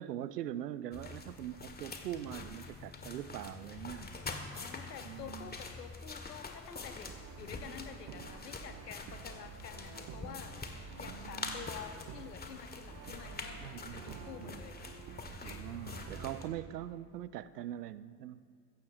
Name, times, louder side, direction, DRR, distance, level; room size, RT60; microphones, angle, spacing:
voice 1, 0.0-4.1 5.0-5.6 10.9-11.7 13.6-14.6 15.4-18.4, right 12 dB, 75° right, 16 dB, 0.6 m, -43 dB
sound 1, 0.9-16.5, left 3 dB, 20° left, 1.7 m, -46 dB
voice 2, 4.5-15.1 15.4-16.0, left 7 dB, 80° left, 7 dB, 1.2 m, -49 dB
Brass instrument, 7.1-16.9, right 7 dB, 45° right, 1.0 m, -50 dB
21.5 x 15.5 x 2.7 m, 2.1 s
figure-of-eight pair, 60°, 47 cm